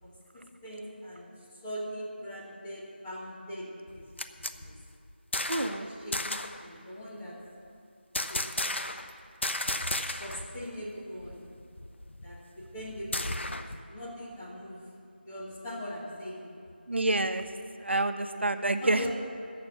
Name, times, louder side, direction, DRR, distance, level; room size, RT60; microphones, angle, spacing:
voice 1, 0.0-3.7 3.9-4.0 4.4-4.8 5.6-7.4 8.3-8.9 9.7-11.4 12.2-14.8 15.2-16.5 18.3-18.5 18.8-19.1, equal, 10° left, -6 dB, 1.1 m, -41 dB
sound 1, 3.9-5.8 6.1-6.6 8.1-9.1 9.4-10.5 10.8-10.9 11.2-13.8, left 1 dB, 85° left, 0.8 m, -34 dB
voice 2, 5.5-5.9 16.9-17.4 17.8-19.0, right 2 dB, 80° right, 8 dB, 0.9 m, -28 dB
11.5 x 6.9 x 8.1 m, 2.5 s
figure-of-eight pair, 175°, 6 cm